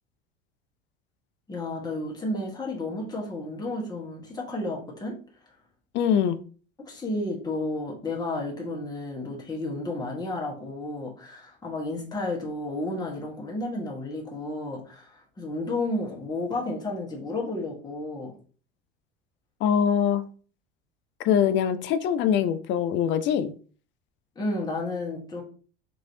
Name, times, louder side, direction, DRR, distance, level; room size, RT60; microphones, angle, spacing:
voice 1, 1.5-5.2 6.8-18.4 24.3-25.4, left 2 dB, 15° left, -3 dB, 1.1 m, -32 dB
voice 2, 5.9-6.4 19.6-20.2 21.2-23.5, left 8 dB, 40° left, 11 dB, 0.4 m, -23 dB
3.0 x 2.7 x 2.6 m, 0.40 s
hypercardioid pair, 80°, 30 cm